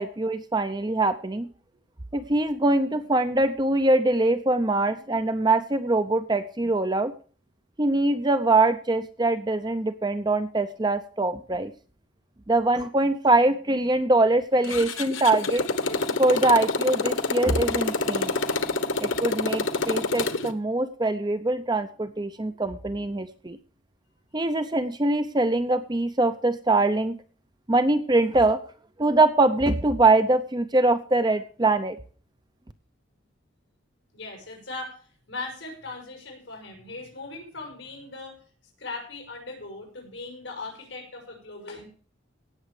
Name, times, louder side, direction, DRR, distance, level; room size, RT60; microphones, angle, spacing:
voice 1, 0.0-1.5 2.1-7.1 7.8-11.7 12.5-15.6 16.2-18.4 19.0-23.6 24.3-27.2 27.7-28.6 29.0-32.0, right 2 dB, 20° right, 10 dB, 0.7 m, -23 dB
Motorcycle, 14.6-20.5, left 3 dB, 85° left, 1.3 m, -27 dB
voice 2, 34.1-38.4 38.8-41.9, left 3 dB, 65° left, 1 dB, 5.8 m, -39 dB
17.5 x 7.2 x 4.9 m, 0.42 s
head